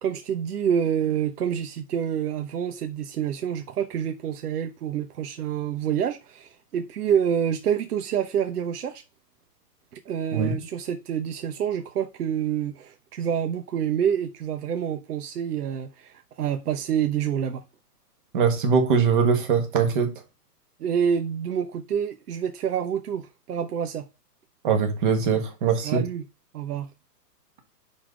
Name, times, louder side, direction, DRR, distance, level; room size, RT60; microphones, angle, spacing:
voice 1, 0.0-9.0 10.1-17.6 20.8-24.0 25.8-26.2 26.5-26.9, right 8 dB, 70° right, 1.1 m, -27 dB
voice 2, 18.3-20.1 24.6-26.0, right 6 dB, 30° right, 1.6 m, -22 dB
10.0 x 4.2 x 5.0 m
hypercardioid pair, 180°, 48 cm